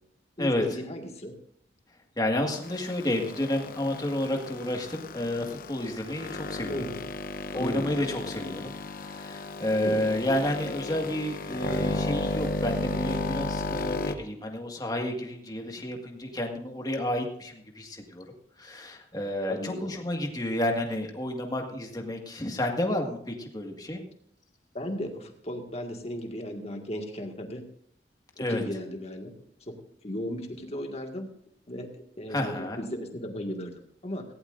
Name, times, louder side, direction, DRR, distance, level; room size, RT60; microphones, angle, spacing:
voice 1, 0.4-1.3 6.7-7.0 7.5-8.0 9.8-10.1 19.5-19.9 24.7-27.6 28.4-29.3 29.6-29.7 30.0-31.3 31.7-34.2, equal, 35° left, 3 dB, 1.9 m, -35 dB
voice 2, 2.2-6.8 7.5-18.3 18.6-24.0 28.4-28.6 32.3-32.8, left 1 dB, 20° left, 2 dB, 1.9 m, -30 dB
sound 1, 2.6-14.2, left 2 dB, 55° left, 0.9 m, -34 dB
17.5 x 16.0 x 2.6 m, 0.65 s
head